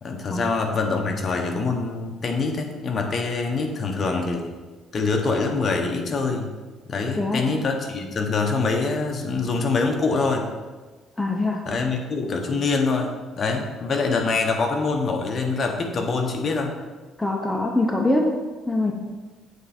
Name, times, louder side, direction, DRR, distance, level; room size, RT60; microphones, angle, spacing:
voice 1, 0.0-4.6 4.9-6.5 6.9-10.5 11.6-16.8, left 4 dB, 35° left, 3 dB, 0.9 m, -25 dB
voice 2, 11.2-11.9 17.2-18.3 18.7-18.9, left 2 dB, 5° left, 0 dB, 0.6 m, -23 dB
8.1 x 4.4 x 4.3 m, 1.3 s
cardioid pair, 135°, 0 cm